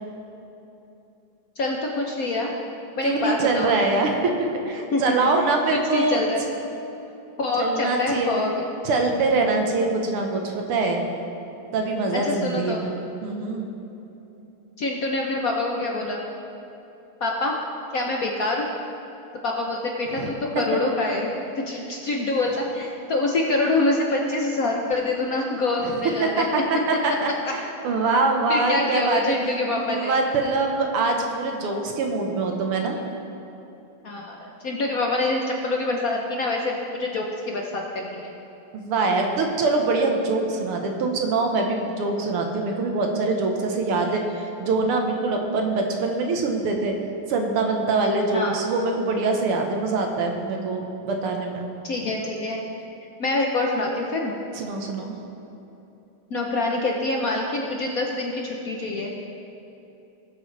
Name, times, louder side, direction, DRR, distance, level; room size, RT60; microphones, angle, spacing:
voice 1, 1.6-2.5 3.0-3.7 4.9-5.1 5.4-6.4 7.4-8.7 12.1-12.8 14.8-16.2 17.2-17.5 17.9-18.7 19.4-21.3 21.6-26.5 28.5-30.1 34.0-37.3 37.5-38.3 48.3-48.6 51.8-52.7 53.2-54.3 56.3-59.1, left 2 dB, 60° left, 0 dB, 1.0 m, -25 dB
voice 2, 3.0-6.2 7.6-8.5 8.8-11.1 11.7-12.9 13.2-13.7 20.1-20.3 25.8-25.9 26.2-29.4 29.7-33.0 38.7-46.9 47.3-51.6 54.6-55.1, right 3 dB, 85° right, 2 dB, 2.1 m, -24 dB
19.5 x 7.8 x 3.3 m, 3.0 s
omnidirectional pair, 2.4 m